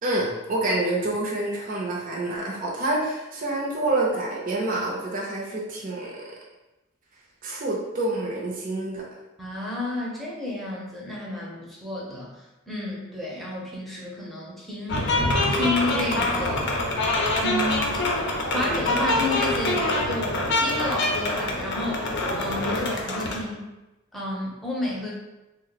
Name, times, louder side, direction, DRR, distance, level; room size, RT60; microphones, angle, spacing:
voice 1, 0.0-6.2 7.4-9.0 22.8-22.9, right 2 dB, 40° right, -3 dB, 0.6 m, -27 dB
voice 2, 9.4-12.3 12.7-15.2 15.5-16.8 17.4-18.0 18.5-23.7 24.1-25.1, left 1 dB, ahead, -5 dB, 0.7 m, -31 dB
sound 1, 14.9-23.4, left 2 dB, 55° left, 0.6 m, -25 dB
3.5 x 2.2 x 3.9 m, 1.0 s
head